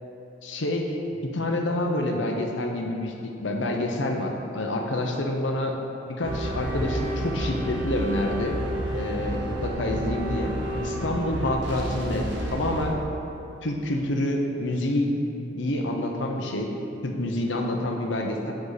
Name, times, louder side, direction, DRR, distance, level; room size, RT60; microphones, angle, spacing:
voice 1, 0.4-5.8 6.1-8.6 8.9-10.5 10.8-13.0 13.6-15.2 15.5-16.7 17.0-18.5, left 1 dB, 70° left, 2 dB, 0.9 m, -27 dB
sound 1, 6.2-12.9, right 1 dB, 70° right, 1.2 m, -30 dB
8.1 x 6.9 x 4.0 m, 3.0 s
head